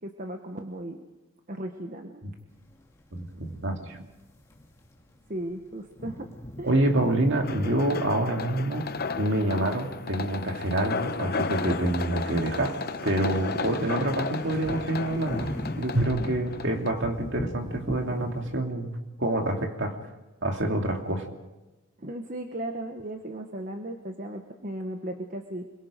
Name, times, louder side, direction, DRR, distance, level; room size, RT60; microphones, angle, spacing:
voice 1, 0.0-1.0 1.5-2.2 3.3-4.1 5.3-6.3 6.6-6.7 22.0-25.7, right 1 dB, 40° right, 5 dB, 1.2 m, -36 dB
sound 1, 2.4-2.5 5.9-16.0, right 1 dB, 70° right, 6.7 m, -41 dB
sound 2, 2.6-18.6, left 1 dB, 15° left, 2.2 m, -41 dB
voice 2, 3.1-4.0 6.6-8.9 9.2-15.5 15.8-20.0 20.4-21.3, right 1 dB, 55° right, 3 dB, 2.5 m, -27 dB
sound 3, 7.4-16.9, left 4 dB, 45° left, 0.8 m, -33 dB
26.0 x 22.5 x 5.2 m, 1.1 s
head